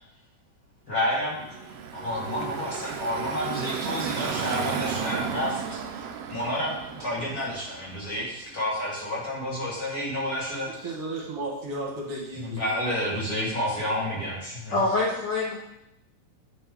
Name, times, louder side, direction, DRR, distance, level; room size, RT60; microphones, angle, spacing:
voice 1, 0.9-10.7 12.3-14.8, left 1 dB, 35° left, -6 dB, 1.7 m, -30 dB
Car passing by / Traffic noise roadway noise, 1.3-8.2, right 7 dB, 85° right, 1.4 m, -34 dB
voice 2, 10.6-12.8, right 2 dB, 60° right, -3 dB, 2.1 m, -34 dB
voice 3, 14.7-15.5, left 2 dB, 80° left, -4 dB, 1.0 m, -25 dB
9.2 x 4.3 x 3.6 m, 0.85 s
omnidirectional pair, 3.3 m